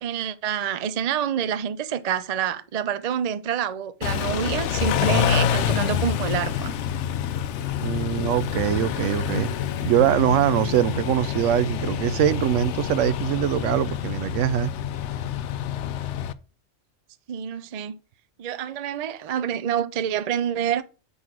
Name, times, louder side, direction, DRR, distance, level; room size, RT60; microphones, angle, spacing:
voice 1, 0.0-6.7 17.3-17.9 18.4-20.8, right 8 dB, 50° right, 0.4 m, -27 dB
Car / Idling / Accelerating revving vroom, 4.0-16.3, left 9 dB, 70° left, 0.8 m, -27 dB
voice 2, 7.8-9.5 9.8-14.7, right 11 dB, 75° right, 0.9 m, -23 dB
6.3 x 5.4 x 6.1 m
omnidirectional pair, 1.3 m